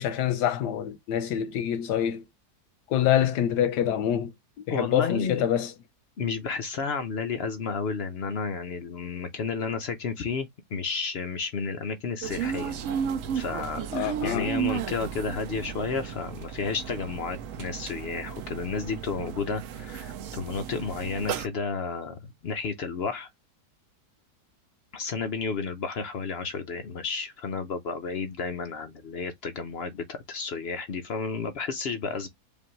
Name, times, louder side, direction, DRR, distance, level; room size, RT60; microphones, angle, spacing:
voice 1, 0.0-2.2 2.9-5.7 13.9-14.5, left 10 dB, 85° left, 1.3 m, -26 dB
voice 2, 4.7-5.5 6.2-12.7 13.3-23.3 24.9-32.3, left 5 dB, 65° left, 0.6 m, -32 dB
sound 1, 12.2-21.5, right 8 dB, 65° right, 0.8 m, -34 dB
5.1 x 2.5 x 3.0 m
omnidirectional pair, 1.7 m